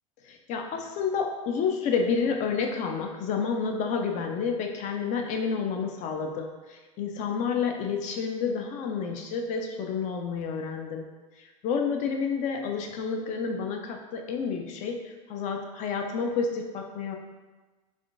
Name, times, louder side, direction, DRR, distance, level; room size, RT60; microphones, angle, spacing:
voice 1, 0.2-11.0 11.4-17.2, left 5 dB, 45° left, 3 dB, 0.5 m, -30 dB
3.5 x 2.4 x 2.5 m, 1.2 s
supercardioid pair, 110°, 18 cm